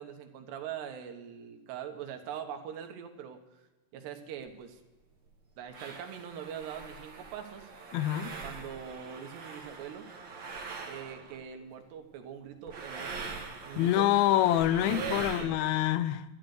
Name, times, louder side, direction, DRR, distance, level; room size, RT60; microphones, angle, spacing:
voice 1, 0.0-3.6 3.9-4.8 5.6-7.7 8.4-10.1 10.9-13.4 13.6-14.1 14.9-15.7, right 8 dB, 85° right, 3.5 m, -42 dB
sound 1, 4.4-4.5 5.3-5.4 5.7-11.5 12.7-15.5, right 4 dB, 40° right, 1.7 m, -43 dB
voice 2, 7.9-8.4 13.8-16.3, left 13 dB, 80° left, 2.3 m, -26 dB
12.0 x 12.0 x 6.6 m
omnidirectional pair, 4.7 m